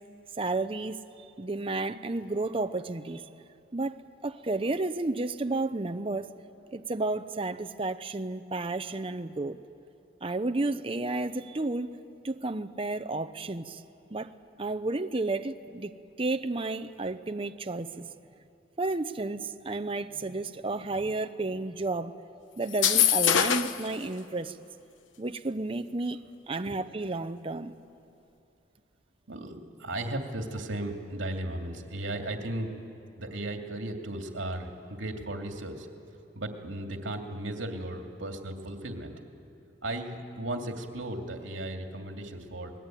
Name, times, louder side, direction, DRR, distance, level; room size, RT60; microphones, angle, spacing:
voice 1, 0.4-1.0 1.4-3.2 3.7-3.9 4.2-6.3 6.7-9.6 10.2-12.0 12.2-13.8 14.1-14.3 14.6-15.9 16.2-18.0 18.8-22.1 22.6-24.6 25.2-27.7, right 2 dB, 30° right, 8 dB, 0.7 m, -32 dB
sound 1, 22.7-23.9, left 9 dB, 80° left, 1.0 m, -23 dB
voice 2, 29.3-32.7 33.2-35.9 36.3-39.2 39.8-42.7, right 1 dB, 75° right, 3 dB, 2.6 m, -36 dB
28.0 x 20.5 x 9.2 m, 2.6 s
head